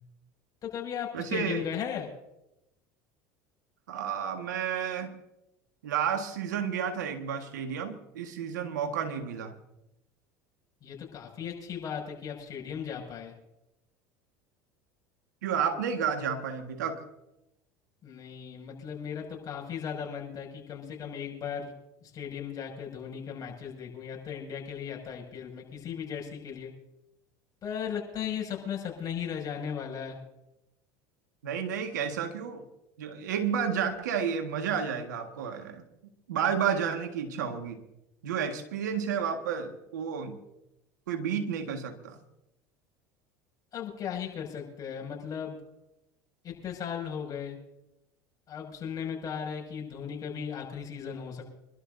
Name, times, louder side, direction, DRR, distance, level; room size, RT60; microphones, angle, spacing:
voice 1, 0.6-2.1 10.8-13.3 18.0-21.7 22.0-26.7 27.6-30.2 43.7-45.6 46.4-47.6 48.5-51.4, left 8 dB, 40° left, 0 dB, 6.1 m, -37 dB
voice 2, 1.1-1.7 3.9-5.2 5.8-9.6 15.4-17.0 31.4-32.7 33.0-35.8 36.3-37.8 38.2-40.4 41.1-42.2, right 7 dB, 90° right, 6 dB, 1.6 m, -31 dB
26.5 x 12.5 x 2.7 m, 0.89 s
hypercardioid pair, 90°, 9 cm